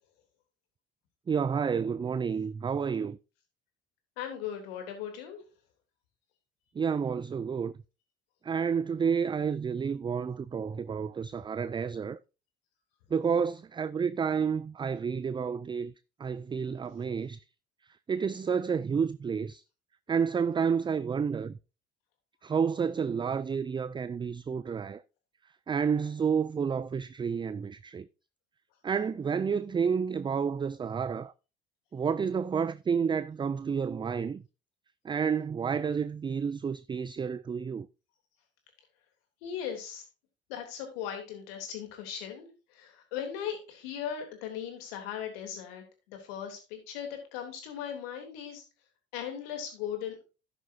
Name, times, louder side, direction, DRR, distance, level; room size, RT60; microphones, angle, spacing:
voice 1, 1.3-3.2 6.8-7.7 8.4-12.2 13.1-15.9 16.2-17.4 18.1-19.6 20.1-21.5 22.4-25.0 25.7-28.1 28.8-31.3 31.9-34.4 35.0-37.9, right 6 dB, 15° right, 0.4 m, -30 dB
voice 2, 4.2-5.4 39.4-40.0 40.5-48.6 49.1-50.2, left 9 dB, 75° left, 3.3 m, -38 dB
11.0 x 9.6 x 2.7 m
hypercardioid pair, 60°, 30 cm